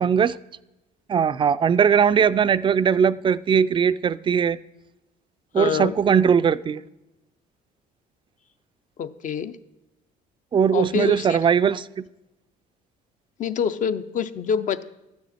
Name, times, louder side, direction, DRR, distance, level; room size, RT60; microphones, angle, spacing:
voice 1, 0.0-0.4 1.1-4.6 5.5-6.8 10.5-12.1, right 7 dB, 30° right, 15 dB, 0.3 m, -20 dB
voice 2, 5.5-5.9 9.0-9.6 10.7-11.4 13.4-14.8, left 7 dB, 50° left, 12 dB, 0.6 m, -26 dB
12.5 x 9.4 x 4.3 m, 0.95 s
cardioid pair, 110°, 17 cm